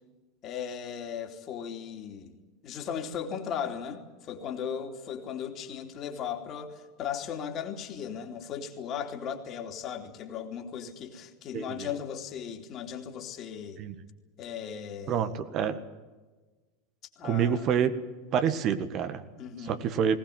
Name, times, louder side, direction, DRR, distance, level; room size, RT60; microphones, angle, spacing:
voice 1, 0.4-2.3 2.6-13.8 14.4-15.3 17.2-17.6 19.4-19.8, left 8 dB, 40° left, 5 dB, 3.1 m, -37 dB
voice 2, 11.5-11.9 13.8-14.0 15.1-15.8 17.2-17.9 18.3-19.2 19.6-20.2, right 8 dB, 45° right, 10 dB, 1.7 m, -27 dB
20.0 x 18.5 x 9.3 m, 1.3 s
figure-of-eight pair, 85°, 0 cm